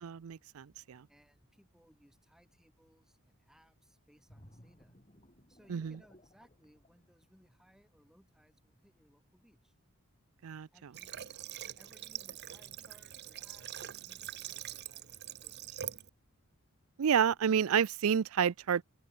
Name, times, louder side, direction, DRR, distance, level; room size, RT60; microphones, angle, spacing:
voice 1, 0.0-1.0 5.7-5.9 10.4-10.7 17.0-18.8, right 7 dB, 70° right, 0.4 m, -29 dB
voice 2, 1.1-5.0 5.5-9.8 10.7-16.0, equal, ahead, 6.5 m, -66 dB
sound 1, 4.3-7.9 8.3-8.5, equal, 30° left, 7.7 m, -61 dB
Water / Water tap faucet, 10.9-16.1, right 11 dB, 50° right, 0.8 m, -44 dB
open air
head